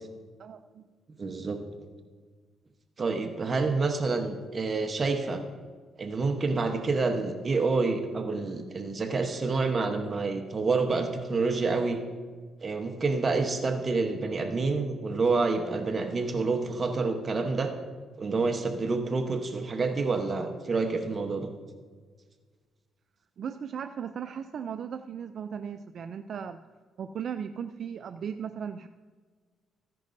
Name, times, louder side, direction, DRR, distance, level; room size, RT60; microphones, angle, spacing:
voice 1, 0.4-0.9 23.4-26.6 27.0-28.9, right 7 dB, 60° right, 9 dB, 0.3 m, -37 dB
voice 2, 1.2-1.6 3.0-5.4 6.0-12.0 12.6-17.7 18.2-21.5, right 3 dB, 35° right, 5 dB, 1.0 m, -28 dB
14.5 x 10.5 x 2.6 m, 1.5 s
cardioid pair, 90°, 0 cm